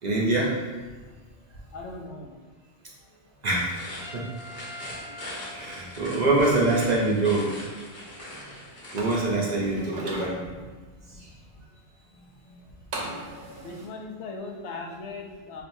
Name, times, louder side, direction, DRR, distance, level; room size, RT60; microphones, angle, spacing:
voice 1, 0.0-0.5 3.4-3.7 4.1-4.2 5.5-7.5 8.9-10.4, right 2 dB, 45° right, -4 dB, 0.7 m, -24 dB
voice 2, 1.7-2.4 9.6-9.8 11.1-11.2 13.2-13.3 13.6-15.6, left 3 dB, 85° left, 1 dB, 0.9 m, -39 dB
sound 1, 3.6-9.3, left 1 dB, 50° left, 1.0 m, -41 dB
Trumpet, 4.0-6.7, equal, 5° right, 0.3 m, -45 dB
sound 2, 9.0-10.3 12.9-13.9, right 2 dB, 75° right, 0.9 m, -37 dB
4.6 x 2.5 x 2.6 m, 1.4 s
omnidirectional pair, 1.1 m